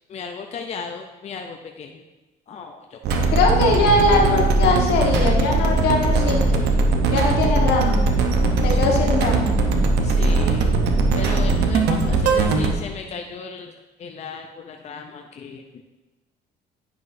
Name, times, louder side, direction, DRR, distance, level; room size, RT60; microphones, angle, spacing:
voice 1, 0.1-2.0 2.5-3.4 8.7-9.2 10.0-10.8 11.1-13.7 14.0-15.8, left 5 dB, 40° left, 4 dB, 0.5 m, -36 dB
sound 1, 3.0-12.7, right 3 dB, 80° right, 0.8 m, -19 dB
voice 2, 3.3-6.7 7.1-8.0 8.6-9.5, left 3 dB, 80° left, 0 dB, 1.4 m, -21 dB
9.5 x 5.9 x 2.6 m, 1.1 s
cardioid pair, 110°, 17 cm